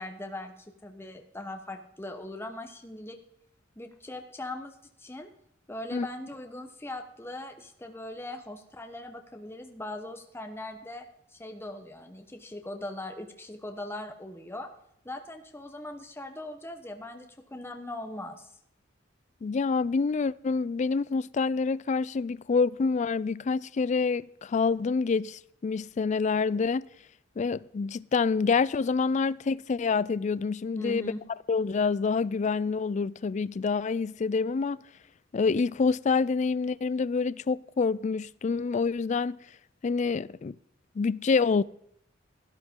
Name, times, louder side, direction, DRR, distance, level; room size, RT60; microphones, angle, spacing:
voice 1, 0.0-3.2 3.8-5.3 5.7-14.7 15.0-18.5 30.8-31.2, left 1 dB, 15° left, 1.1 m, -40 dB
voice 2, 19.4-26.9 27.4-31.1 31.5-34.8 35.3-39.4 39.8-40.5 41.0-41.6, left 4 dB, 40° left, 0.4 m, -27 dB
13.5 x 12.0 x 3.7 m
head